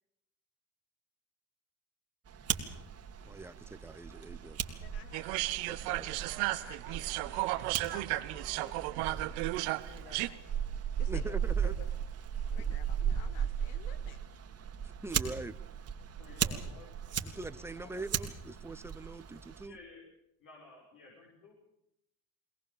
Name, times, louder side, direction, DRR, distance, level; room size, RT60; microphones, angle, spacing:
Fire, 2.3-19.7, right 8 dB, 40° right, 2.2 m, -37 dB
voice 1, 3.3-4.6 5.7-6.1 11.1-11.7 15.0-15.6 17.2-19.8, right 3 dB, 5° right, 14 dB, 0.8 m, -43 dB
voice 2, 4.8-10.5 11.0-11.9 12.5-14.2 17.8-18.0, left 8 dB, 85° left, 13 dB, 1.8 m, -54 dB
sound 1, 5.1-10.3, right 19 dB, 80° right, 1.0 m, -34 dB
voice 3, 16.2-16.9 19.6-20.0 20.4-21.5, left 3 dB, 60° left, -2 dB, 6.2 m, -54 dB
21.5 x 19.0 x 7.3 m, 0.84 s
supercardioid pair, 95°, 37 cm